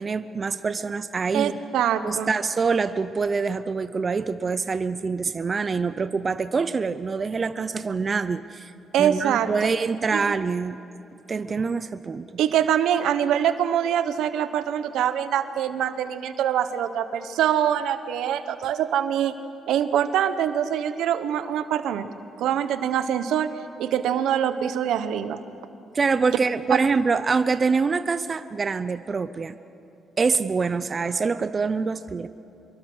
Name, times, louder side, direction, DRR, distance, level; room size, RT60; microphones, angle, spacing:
voice 1, 0.0-1.6 2.0-8.7 9.0-10.8 11.3-12.3 25.9-29.6 30.2-32.3, right 4 dB, 35° right, 12 dB, 0.6 m, -25 dB
voice 2, 1.3-2.3 8.9-9.7 10.1-10.3 12.4-19.3 19.7-22.1 22.4-23.5 23.8-25.4 26.7-26.8, right 9 dB, 80° right, 11 dB, 1.1 m, -24 dB
25.5 x 23.0 x 6.3 m, 2.8 s
cardioid pair, 90°, 0 cm